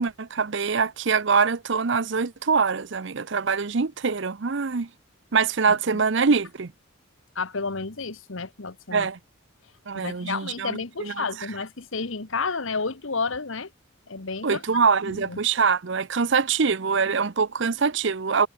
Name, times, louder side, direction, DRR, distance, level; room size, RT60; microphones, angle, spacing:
voice 1, 0.0-4.9 5.3-6.7 8.9-9.2 9.9-11.2 14.4-18.5, right 5 dB, 60° right, 0.7 m, -24 dB
voice 2, 5.7-6.0 7.3-9.1 9.9-13.7 14.1-14.6 15.1-15.4, left 4 dB, 70° left, 1.4 m, -31 dB
head